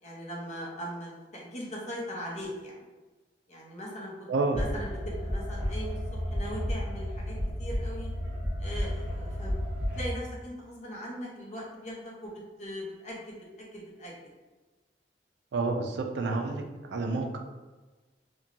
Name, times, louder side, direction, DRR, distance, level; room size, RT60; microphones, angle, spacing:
voice 1, 0.0-2.8 3.5-4.1 4.5-6.0 6.3-8.1 8.6-9.6 9.9-14.1 16.5-16.6, equal, 40° left, -3 dB, 0.7 m, -40 dB
voice 2, 4.3-4.7 15.5-16.6 16.9-17.4, right 3 dB, 75° right, 4 dB, 0.4 m, -29 dB
sound 1, 4.5-10.1, equal, 5° right, 1.2 m, -32 dB
2.9 x 2.2 x 2.5 m, 1.2 s
head